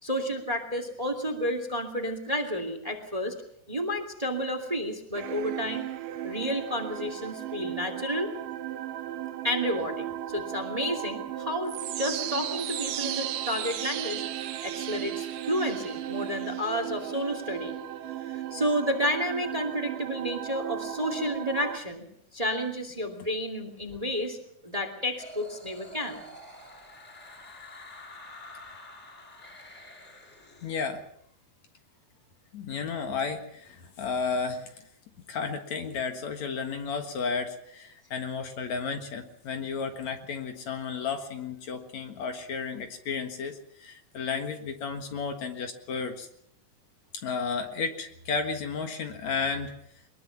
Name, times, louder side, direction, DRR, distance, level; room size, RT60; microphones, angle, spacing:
voice 1, 0.0-3.3 3.7-5.8 6.2-8.3 9.4-14.2 14.6-17.7 18.2-22.0 22.3-24.4 24.6-26.2, equal, 10° right, 7 dB, 2.2 m, -31 dB
sound 1, 5.1-21.8, right 12 dB, 85° right, 2.6 m, -35 dB
sound 2, 25.2-30.8, left 1 dB, 20° left, 5.1 m, -47 dB
voice 2, 30.6-31.0 32.5-34.8 35.3-46.3 47.2-49.7, left 5 dB, 60° left, 6 dB, 2.8 m, -33 dB
22.5 x 21.5 x 5.9 m, 0.72 s
omnidirectional pair, 3.7 m